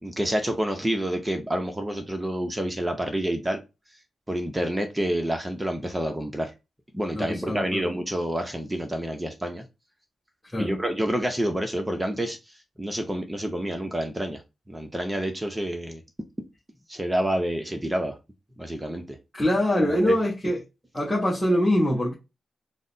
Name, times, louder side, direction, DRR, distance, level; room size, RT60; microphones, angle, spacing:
voice 1, 0.0-3.6 4.3-6.5 6.9-9.6 10.6-12.4 12.8-14.4 14.7-16.0 16.9-18.2 18.6-19.2 19.8-20.1, right 1 dB, 10° right, 0.7 m, -28 dB
voice 2, 7.2-7.8 10.5-10.7 19.3-20.6 20.9-22.1, left 1 dB, 5° left, 1.4 m, -23 dB
4.0 x 2.1 x 3.9 m
cardioid pair, 105°, 0 cm